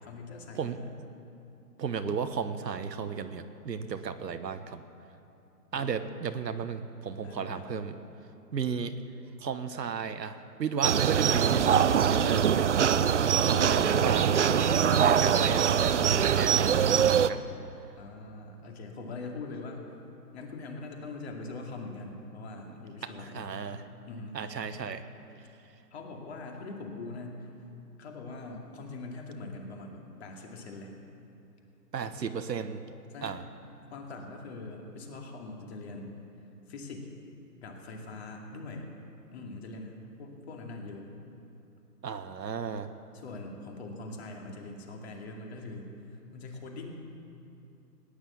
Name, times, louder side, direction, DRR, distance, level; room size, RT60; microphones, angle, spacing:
voice 1, 0.0-0.8 5.7-6.2 7.2-7.7 13.1-13.9 17.9-19.9 20.3-23.6 24.0-24.4 25.9-27.5 28.0-30.9 32.0-32.1 33.1-33.4 33.9-36.2 36.7-37.1 37.6-38.9 39.3-41.1 43.1-46.9, left 3 dB, 40° left, 1 dB, 2.4 m, -42 dB
voice 2, 1.8-4.8 5.7-8.0 8.5-8.9 9.4-12.7 13.5-17.4 23.0-23.8 24.3-25.0 31.9-32.8 33.2-33.4 42.0-42.9, right 6 dB, 80° right, 9 dB, 1.3 m, -34 dB
sound 1, 10.8-17.3, right 8 dB, 50° right, 0.5 m, -23 dB
18.0 x 10.0 x 7.1 m, 2.8 s
hypercardioid pair, 155°, 49 cm